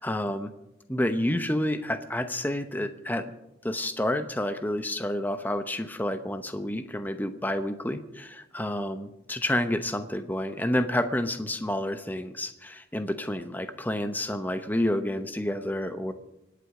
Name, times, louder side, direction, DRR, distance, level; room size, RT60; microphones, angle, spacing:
voice 1, 0.0-0.5 0.9-3.3 3.6-16.1, left 1 dB, 10° left, 9 dB, 0.8 m, -29 dB
25.5 x 8.5 x 4.9 m, 0.91 s
head